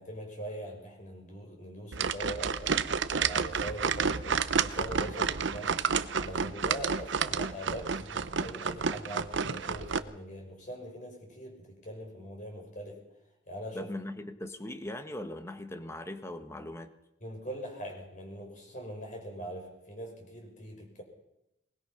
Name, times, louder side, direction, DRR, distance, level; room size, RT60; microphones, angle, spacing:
voice 1, 0.0-5.7 6.2-13.0 13.5-13.9 17.2-21.0, right 1 dB, 40° left, 2 dB, 6.1 m, -42 dB
sound 1, 1.9-10.0, right 6 dB, 70° right, 0.8 m, -30 dB
voice 2, 13.7-16.9, left 1 dB, 15° left, 8 dB, 1.4 m, -39 dB
23.0 x 20.0 x 5.7 m, 0.86 s
head